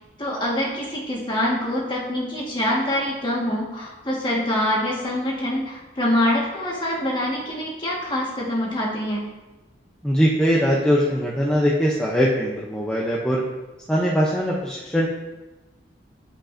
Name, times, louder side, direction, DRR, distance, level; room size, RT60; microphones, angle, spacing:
voice 1, 0.2-9.2, left 1 dB, 25° left, -4 dB, 1.5 m, -25 dB
voice 2, 10.0-13.4 13.9-15.1, equal, 5° left, -4 dB, 0.6 m, -21 dB
13.0 x 5.1 x 2.6 m, 1.1 s
head